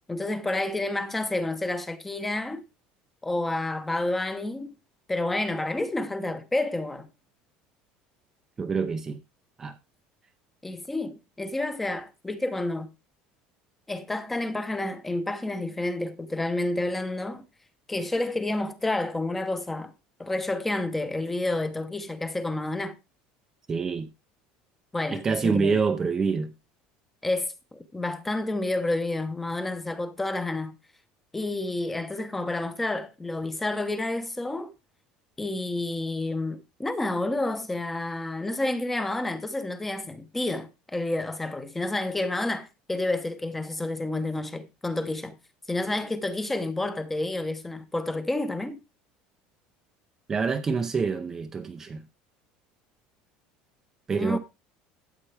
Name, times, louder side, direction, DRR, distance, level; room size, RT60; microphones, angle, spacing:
voice 1, 0.1-2.6 3.2-4.7 5.1-7.1 10.6-12.9 13.9-17.4 17.9-19.9 20.2-22.9 24.9-25.8 27.2-30.7 31.3-34.7 35.4-45.3 45.7-48.8 54.2-54.4, left 2 dB, 5° left, 0.9 m, -29 dB
voice 2, 8.6-9.2 9.6-9.8 23.7-24.1 25.1-26.5 50.3-52.0 54.1-54.4, right 5 dB, 15° right, 0.6 m, -26 dB
13.0 x 8.2 x 3.4 m
cardioid pair, 180°, 3 cm